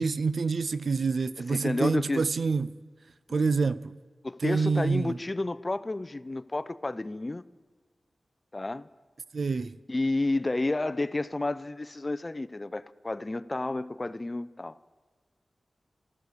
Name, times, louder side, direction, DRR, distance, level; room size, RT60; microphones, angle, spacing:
voice 1, 0.0-2.8 3.3-3.9 4.4-5.2 9.3-9.7, right 4 dB, 70° right, 0.5 m, -27 dB
voice 2, 1.4-2.3 4.2-7.4 8.5-8.9 9.9-14.8, left 2 dB, 30° left, 0.5 m, -31 dB
14.5 x 11.5 x 8.3 m
wide cardioid pair, 80°, 0 cm